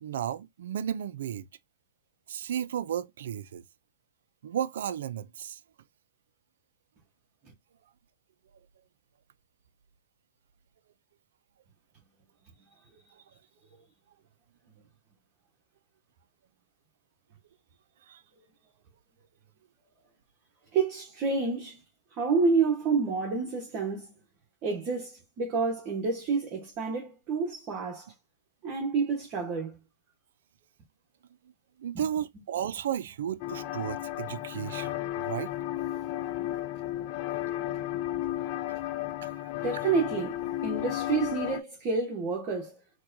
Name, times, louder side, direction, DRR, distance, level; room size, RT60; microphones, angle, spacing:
voice 1, 0.0-1.5 2.3-3.6 4.4-5.6 13.1-13.2 18.1-18.2 31.8-35.5 38.4-39.5, right 9 dB, 75° right, 0.4 m, -34 dB
voice 2, 20.7-21.8 22.1-24.1 24.6-28.1 28.6-29.8 31.9-32.0 39.6-42.8, right 4 dB, 35° right, 1.1 m, -29 dB
sound 1, 33.4-41.6, left 14 dB, 50° left, 0.4 m, -33 dB
4.5 x 2.3 x 2.6 m
hypercardioid pair, 130°, 0 cm